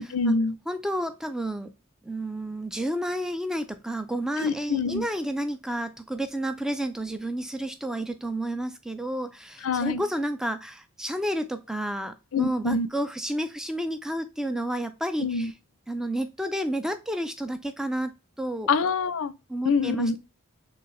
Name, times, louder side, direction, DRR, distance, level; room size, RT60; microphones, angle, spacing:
voice 1, 0.0-0.6 4.4-5.0 9.6-10.0 12.3-12.9 15.2-15.5 18.7-19.3 19.6-20.2, left 4 dB, 75° left, 0.5 m, -25 dB
voice 2, 0.7-1.7 2.0-15.5 15.9-18.1 18.4-18.7 19.5-20.2, right 1 dB, 5° right, 0.4 m, -30 dB
4.6 x 3.5 x 3.1 m
head